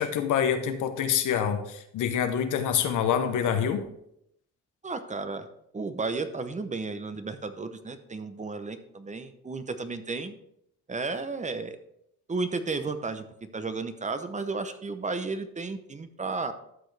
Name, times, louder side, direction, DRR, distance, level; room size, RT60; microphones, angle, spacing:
voice 1, 0.0-3.8, left 8 dB, 80° left, 8 dB, 1.0 m, -26 dB
voice 2, 4.8-5.5 5.7-10.4 10.9-11.8 12.3-13.2 13.5-16.5, right 3 dB, 25° right, 10 dB, 0.8 m, -33 dB
12.5 x 6.2 x 3.3 m, 0.76 s
cardioid pair, 90°, 30 cm